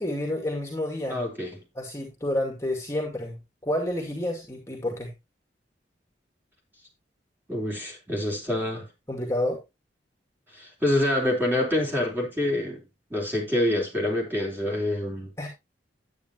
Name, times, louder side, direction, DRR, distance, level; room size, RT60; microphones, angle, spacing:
voice 1, 0.0-1.2 1.7-5.1 9.1-9.6 15.4-15.5, left 1 dB, 15° left, 2.4 m, -29 dB
voice 2, 1.1-1.6 7.5-8.9 10.5-12.8 13.1-15.3, left 1 dB, 10° right, 3.7 m, -26 dB
10.5 x 9.3 x 2.9 m
head